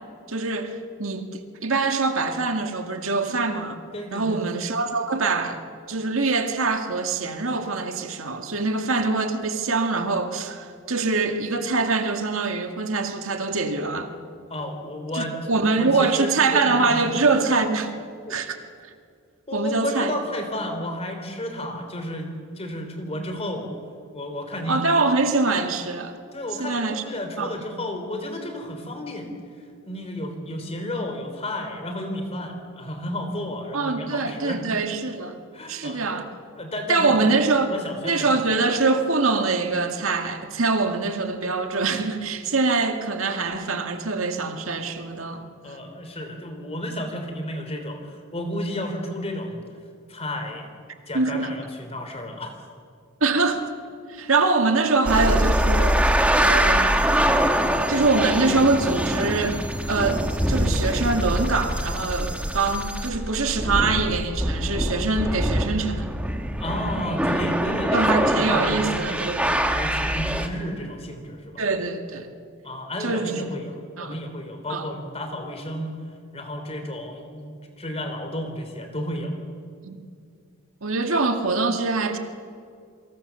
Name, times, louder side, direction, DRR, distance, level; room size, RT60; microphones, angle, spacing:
voice 1, 0.3-3.8 4.1-5.6 5.9-14.1 15.1-17.9 18.3-18.6 19.5-20.1 24.7-26.2 26.6-27.0 27.4-27.6 33.7-35.4 35.7-36.3 36.9-37.7 38.0-45.4 51.1-51.5 53.2-53.6 54.1-56.0 56.4-57.0 57.9-59.6 59.9-66.1 67.9-69.6 71.6-72.3 73.0-73.3 74.0-74.2 74.7-74.9 79.8-80.0 80.8-82.2, right 3 dB, 75° right, 2.0 m, -24 dB
voice 2, 3.9-4.4 14.5-15.3 15.8-17.0 19.5-23.7 24.1-24.8 26.3-29.3 29.9-34.6 35.5-36.0 36.6-37.2 37.6-38.3 45.6-49.6 50.1-50.7 51.1-52.5 66.6-71.6 72.6-75.9 76.3-79.4, left 1 dB, 30° left, 3.2 m, -32 dB
sound 1, 55.0-70.5, equal, 5° right, 1.7 m, -24 dB
29.0 x 24.0 x 7.0 m
head